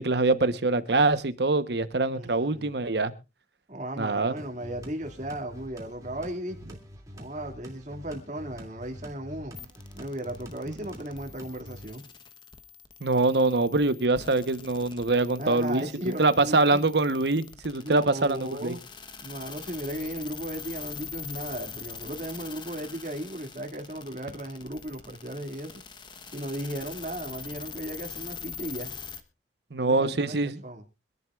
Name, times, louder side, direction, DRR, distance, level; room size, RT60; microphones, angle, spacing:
voice 1, 0.0-3.1 4.0-4.3 10.7-10.8 13.0-15.8 16.2-18.7 29.7-30.6, right 3 dB, 70° right, 1.0 m, -24 dB
voice 2, 2.1-2.7 3.7-6.8 7.1-9.6 9.9-12.0 15.4-16.8 17.8-18.8 19.2-25.8 26.3-28.9 29.8-30.8, right 1 dB, 45° right, 2.3 m, -36 dB
sound 1, 4.4-11.9, equal, 20° right, 2.6 m, -46 dB
sound 2, 9.6-29.2, left 6 dB, 25° left, 1.1 m, -43 dB
25.0 x 11.0 x 2.4 m
head